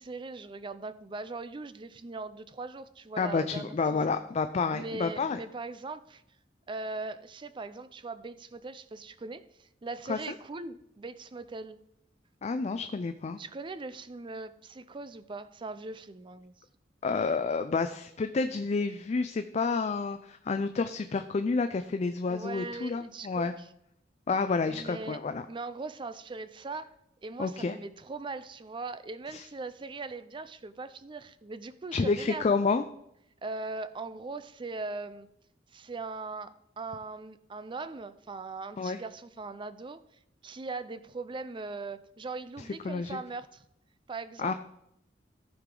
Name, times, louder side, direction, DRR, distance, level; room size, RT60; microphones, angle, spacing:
voice 1, 0.0-4.2 4.7-6.2 6.7-11.8 13.4-16.5 22.3-23.7 24.7-25.2 25.5-26.9 27.2-32.4 33.4-35.3 35.7-40.0 40.4-43.7 44.1-44.5, right 3 dB, 25° right, 13 dB, 0.4 m, -40 dB
voice 2, 3.2-5.4 10.1-10.2 12.4-13.4 17.0-23.5 24.3-25.5 27.4-27.8 29.3-29.5 31.9-32.8 38.8-39.0 42.6-43.2 44.4-44.5, left 4 dB, 40° left, 9 dB, 0.4 m, -29 dB
14.5 x 4.9 x 3.8 m, 0.78 s
head